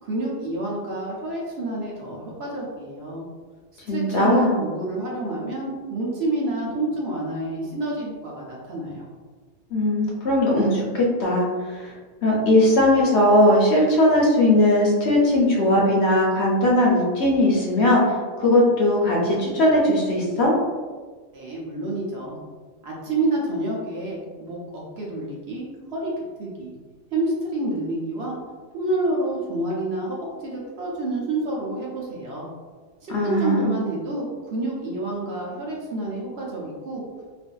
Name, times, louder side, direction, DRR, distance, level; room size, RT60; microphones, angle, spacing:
voice 1, 0.0-3.2 3.9-9.0 21.3-22.4 22.8-26.1 26.4-26.7 27.1-28.4 28.7-32.5 33.0-37.0, right 2 dB, 65° right, -4 dB, 0.8 m, -28 dB
voice 2, 3.9-4.6 9.7-11.9 12.2-18.0 18.4-20.5 33.1-33.7, left 1 dB, 65° left, -3 dB, 0.8 m, -19 dB
2.5 x 2.5 x 2.2 m, 1.4 s
omnidirectional pair, 1.3 m